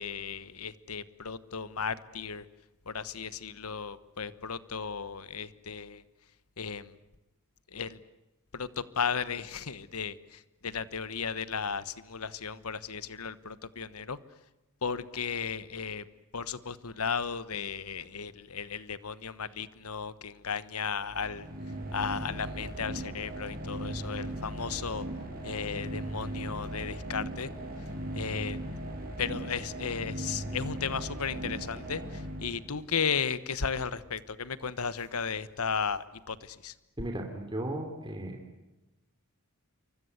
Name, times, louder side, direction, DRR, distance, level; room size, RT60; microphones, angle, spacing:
voice 1, 0.0-2.4 2.9-6.0 6.6-6.9 7.7-8.0 8.5-14.2 14.8-16.0 16.3-21.5 21.9-25.1 25.4-27.5 28.1-28.6 29.2-36.7, left 6 dB, 85° left, 15 dB, 1.2 m, -35 dB
sound 1, 21.1-32.9, right 1 dB, 45° right, 7.1 m, -38 dB
voice 2, 37.0-38.4, right 1 dB, 20° right, 3 dB, 3.1 m, -35 dB
28.0 x 24.5 x 8.1 m, 0.99 s
head